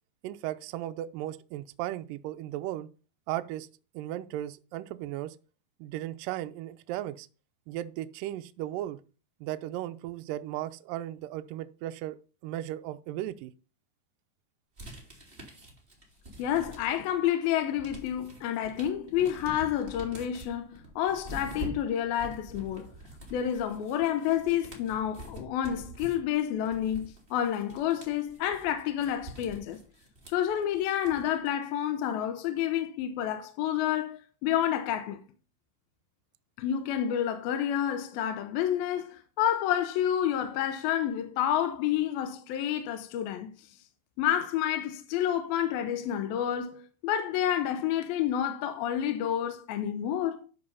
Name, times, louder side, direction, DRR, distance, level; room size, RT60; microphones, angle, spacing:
voice 1, 0.2-2.9 3.3-3.7 3.9-5.4 5.8-7.3 7.7-9.0 9.4-12.2 12.4-13.5, right 13 dB, 90° right, 1.9 m, -36 dB
sound 1, 14.8-17.2 17.5-31.5, right 1 dB, 20° right, 1.7 m, -46 dB
voice 2, 16.4-22.9 23.3-29.8 30.3-35.2 36.6-43.5 44.2-50.4, left 10 dB, 75° left, 2.5 m, -29 dB
12.0 x 4.2 x 5.5 m
omnidirectional pair, 4.6 m